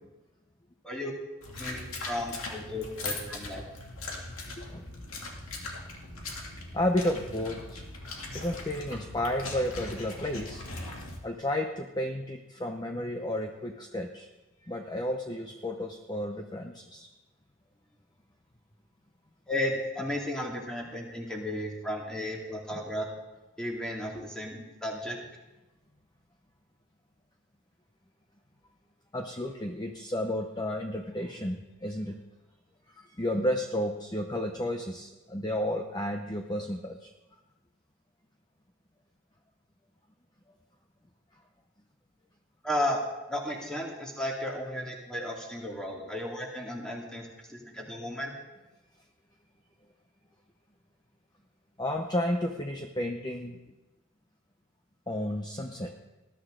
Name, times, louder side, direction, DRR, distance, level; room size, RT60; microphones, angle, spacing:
sound 1, 1.4-11.2, left 2 dB, 85° left, 2.4 m, -40 dB
voice 1, 1.5-3.6 19.5-23.1 23.6-25.2 42.6-43.0 43.3-48.3, left 1 dB, 5° left, -2 dB, 2.4 m, -34 dB
voice 2, 6.7-7.8 8.3-10.6 11.2-14.3 14.6-17.1 22.7-22.8 24.1-24.2 29.1-32.2 32.9-37.1 51.8-53.6 55.1-56.0, left 1 dB, 20° left, 4 dB, 0.7 m, -32 dB
19.5 x 12.5 x 3.8 m, 1.1 s
head